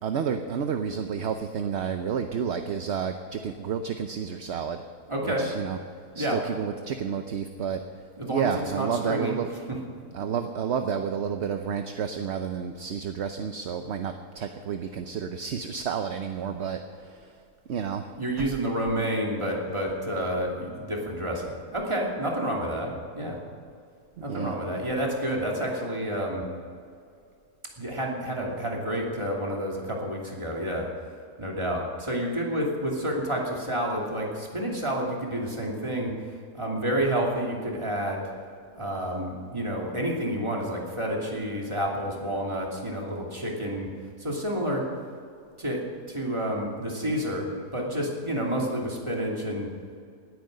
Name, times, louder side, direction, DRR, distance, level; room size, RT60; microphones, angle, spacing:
voice 1, 0.0-4.8 5.2-5.8 6.1-7.8 8.3-9.5 10.1-17.3 17.7-18.1 18.4-18.5 24.3-24.6, right 7 dB, 55° right, 7 dB, 0.9 m, -30 dB
voice 2, 5.1-5.5 6.1-6.4 8.2-9.8 18.2-23.4 24.2-26.5 27.8-30.9 31.4-36.1 36.5-38.2 38.7-43.9 44.2-44.9 45.6-45.8 46.1-47.5 47.7-49.7, equal, 20° right, -2 dB, 2.7 m, -29 dB
18.5 x 9.5 x 6.6 m, 2.3 s
omnidirectional pair, 1.6 m